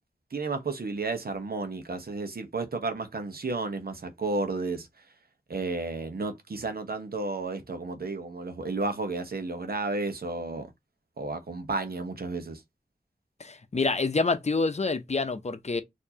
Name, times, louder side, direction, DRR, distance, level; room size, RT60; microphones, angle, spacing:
voice 1, 0.3-4.9 5.5-10.7 11.2-12.6, right 3 dB, 80° right, 0.9 m, -32 dB
voice 2, 13.4-15.8, left 3 dB, 45° left, 0.7 m, -27 dB
4.6 x 2.7 x 2.8 m
wide cardioid pair, 65°, 16 cm